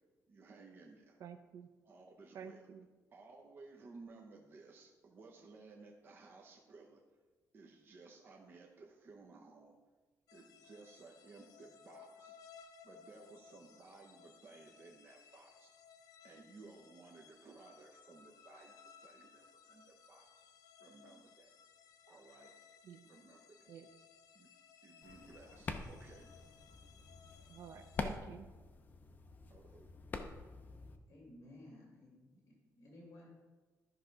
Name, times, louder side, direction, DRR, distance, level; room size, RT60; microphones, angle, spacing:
voice 1, 0.3-1.2 1.8-2.6 3.1-7.0 7.5-9.8 10.3-12.4 12.8-15.7 16.2-18.8 19.0-20.2 20.8-21.5 22.1-22.5 23.0-23.7 24.3-24.5 24.8-26.3 29.5-29.9, right 3 dB, 35° right, 0 dB, 0.8 m, -57 dB
voice 2, 1.2-1.7 2.3-2.9 22.8-23.0 23.7-23.9 27.5-28.5, right 7 dB, 60° right, 9 dB, 0.6 m, -50 dB
sound 1, 10.3-28.2, left 7 dB, 70° left, 0.6 m, -61 dB
sound 2, 25.0-31.0, left 3 dB, 30° left, 0.6 m, -46 dB
voice 3, 31.1-33.3, left 1 dB, 55° left, -3 dB, 2.4 m, -57 dB
12.0 x 5.9 x 3.8 m, 1.3 s
cardioid pair, 155°, 6 cm